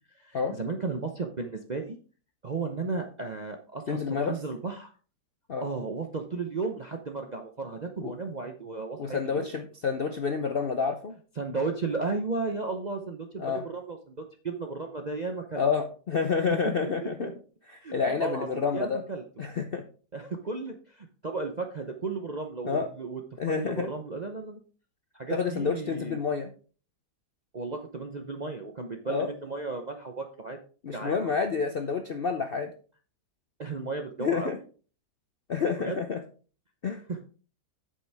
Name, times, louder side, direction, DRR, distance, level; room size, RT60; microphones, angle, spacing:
voice 1, 0.1-2.0 2.4-4.9 5.6-9.4 11.4-14.1 14.4-15.6 16.8-17.3 17.8-18.5 18.7-19.2 20.1-23.2 23.5-24.6 25.1-26.2 27.5-30.6 30.9-31.5 33.6-34.6 35.8-36.0 37.1-37.2, right 4 dB, 45° right, 4 dB, 0.6 m, -34 dB
voice 2, 3.9-4.4 5.5-5.7 8.0-8.1 9.0-11.2 13.4-13.6 15.6-17.3 17.7-19.0 19.4-19.8 22.6-22.9 23.4-23.9 25.3-26.5 29.1-29.3 30.8-32.7 34.2-34.6 35.5-36.2 36.8-37.0, left 5 dB, 60° left, 6 dB, 0.6 m, -29 dB
8.5 x 7.7 x 3.4 m, 0.39 s
omnidirectional pair, 1.8 m